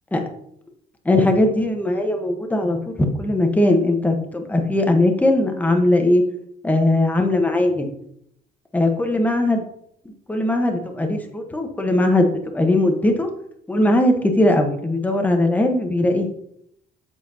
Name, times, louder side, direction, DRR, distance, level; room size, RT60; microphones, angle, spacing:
voice 1, 1.0-6.2 6.6-7.9 8.7-9.6 10.3-13.3 13.7-16.3, left 1 dB, 10° left, 4 dB, 1.1 m, -19 dB
7.8 x 6.7 x 2.8 m, 0.72 s
cardioid pair, 110°, 17 cm